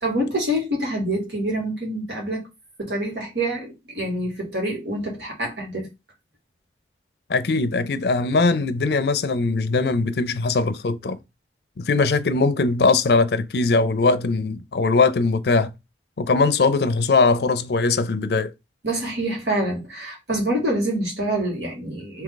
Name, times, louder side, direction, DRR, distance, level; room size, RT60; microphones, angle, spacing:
voice 1, 0.0-2.5 2.8-5.9 18.8-22.2, right 1 dB, 75° right, 1.8 m, -26 dB
voice 2, 7.3-11.2 11.8-15.7 16.2-18.5, left 3 dB, 65° left, 0.5 m, -20 dB
3.6 x 2.8 x 3.8 m
head